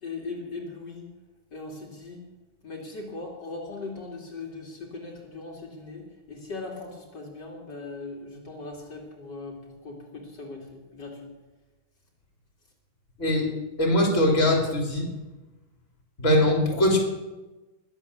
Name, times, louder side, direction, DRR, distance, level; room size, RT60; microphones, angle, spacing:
voice 1, 0.0-1.1 1.5-2.2 2.6-11.3, left 3 dB, 65° left, -2 dB, 3.0 m, -39 dB
voice 2, 13.8-15.1 16.2-17.0, left 1 dB, 40° left, 1 dB, 3.4 m, -21 dB
21.0 x 7.9 x 7.2 m, 1.1 s
omnidirectional pair, 2.0 m